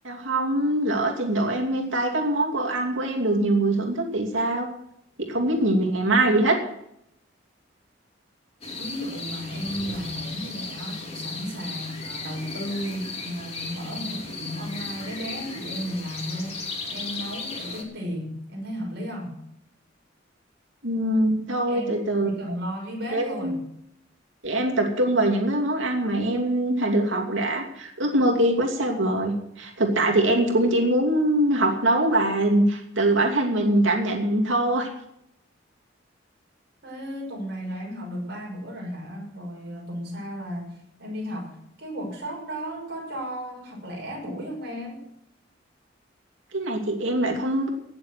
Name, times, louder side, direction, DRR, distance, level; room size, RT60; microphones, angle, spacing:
voice 1, 0.0-4.7 5.3-6.5 20.8-22.3 23.1-23.6 24.4-34.9 46.5-47.7, right 1 dB, 80° right, 2 dB, 2.7 m, -23 dB
sound 1, 8.6-17.8, left 3 dB, 35° left, 3.1 m, -36 dB
voice 2, 8.8-19.3 21.7-23.6 36.8-45.0, equal, 60° right, 0 dB, 5.9 m, -34 dB
17.5 x 7.5 x 7.7 m, 0.75 s
head